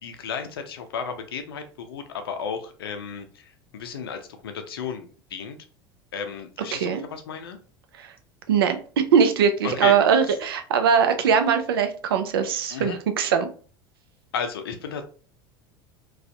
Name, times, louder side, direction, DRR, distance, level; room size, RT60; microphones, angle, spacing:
voice 1, 0.0-5.6 6.1-7.6 9.6-9.9 10.3-10.4 12.7-13.0 14.3-15.0, left 6 dB, 85° left, 7 dB, 0.4 m, -33 dB
voice 2, 6.7-7.0 8.0-8.1 8.5-13.5, right 7 dB, 80° right, 8 dB, 0.4 m, -21 dB
2.5 x 2.3 x 2.2 m, 0.40 s
hypercardioid pair, 80°, 12 cm